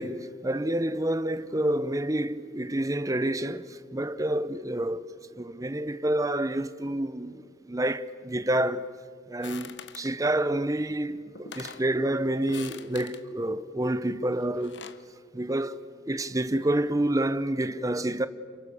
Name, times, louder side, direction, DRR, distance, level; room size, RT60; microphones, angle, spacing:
voice 1, 0.0-5.1 5.4-8.9 9.3-14.8 15.3-18.3, right 1 dB, 20° right, 0.8 m, -28 dB
sound 1, 9.4-10.1 11.0-11.1 11.4-11.9 12.4-13.2 14.4-15.1, left 6 dB, 75° left, 1.1 m, -43 dB
29.5 x 27.5 x 6.9 m
head